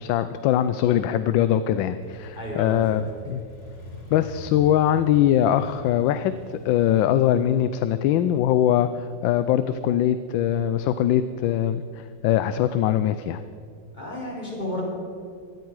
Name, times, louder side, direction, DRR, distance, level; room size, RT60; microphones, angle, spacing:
voice 1, 0.0-3.4 4.1-13.4, left 11 dB, 85° left, 12 dB, 1.3 m, -22 dB
Motorcycle, 2.0-9.7, left 1 dB, 55° left, 2.6 m, -44 dB
voice 2, 2.3-3.0 13.9-14.8, left 1 dB, 25° left, -4 dB, 4.3 m, -32 dB
17.5 x 14.0 x 4.7 m, 2.4 s
omnidirectional pair, 2.0 m